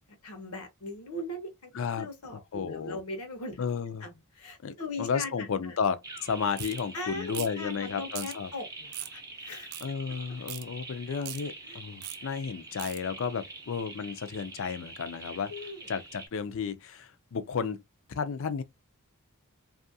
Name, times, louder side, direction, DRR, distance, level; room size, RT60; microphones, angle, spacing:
voice 1, 0.2-3.6 4.0-5.8 6.9-9.7 11.6-11.8 15.5-15.9, left 2 dB, 80° left, 0.8 m, -40 dB
voice 2, 1.7-2.1 2.5-3.0 3.6-4.1 4.6-8.5 9.8-15.5 15.9-17.8 18.2-18.6, left 6 dB, 60° left, 0.4 m, -33 dB
sound 1, 6.0-16.3, right 3 dB, 15° right, 0.6 m, -45 dB
sound 2, 6.6-6.8 7.3-7.6 8.1-8.3 8.9-9.2 9.7-9.9 10.5-10.6 11.2-11.4 12.0-12.2 12.8-13.0, right 15 dB, 90° right, 0.3 m, -39 dB
2.7 x 2.4 x 2.6 m
head